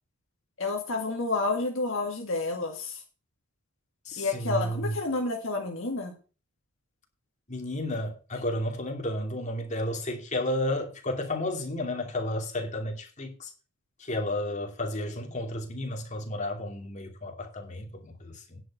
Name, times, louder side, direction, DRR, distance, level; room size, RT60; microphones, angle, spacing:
voice 1, 0.6-3.0 4.2-6.1, left 3 dB, 60° left, 2.0 m, -30 dB
voice 2, 4.0-4.9 7.5-13.5 14.0-18.6, left 1 dB, 35° left, 2.6 m, -32 dB
10.0 x 6.6 x 6.0 m
head